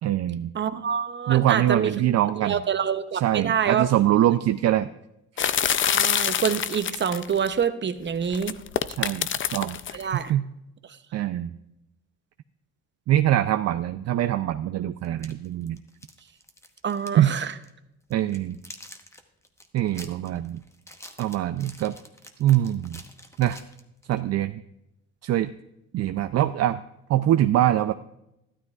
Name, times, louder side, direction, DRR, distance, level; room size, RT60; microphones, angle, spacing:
voice 1, 0.0-0.5 1.3-2.6 3.1-4.9 5.4-5.5 9.0-10.4 11.1-11.5 13.1-15.8 17.2-17.4 18.1-18.6 19.7-20.6 21.2-22.0 22.4-23.0 23.4-23.6 24.1-24.6 25.2-25.5 25.9-26.8 27.1-27.9, right 12 dB, 60° right, 10 dB, 0.4 m, -23 dB
voice 2, 0.5-2.0 2.4-3.9 5.8-8.6 9.9-10.3 16.8-17.5, right 7 dB, 40° right, 10 dB, 0.8 m, -26 dB
sound 1, 5.4-7.5 8.3-10.0, left 9 dB, 40° left, 0.5 m, -25 dB
sound 2, 15.0-17.3 17.5-17.7 18.1-24.2, left 1 dB, 10° left, 1.0 m, -47 dB
13.0 x 12.5 x 2.4 m, 0.87 s
cardioid pair, 90°, 30 cm